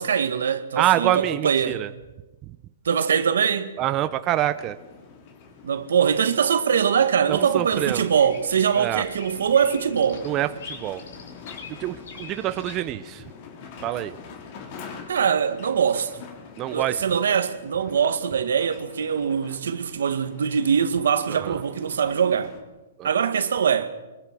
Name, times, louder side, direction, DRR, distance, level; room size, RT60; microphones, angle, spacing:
voice 1, 0.0-1.9 2.8-3.8 5.6-10.3 15.1-16.2 16.7-22.5 23.0-23.9, right 7 dB, 80° right, 2.0 m, -22 dB
voice 2, 0.8-1.9 3.8-4.8 7.3-8.1 8.8-9.0 10.2-11.0 11.8-13.2 13.8-14.2 16.6-17.0 21.3-21.6 23.0-23.1, right 13 dB, 25° right, 0.7 m, -26 dB
sound 1, 4.4-22.6, left 5 dB, 35° left, 3.2 m, -45 dB
Bird vocalization bird call bird song, 7.7-12.8, left 5 dB, 65° left, 4.4 m, -43 dB
23.5 x 22.0 x 6.2 m
hypercardioid pair, 160°, 0 cm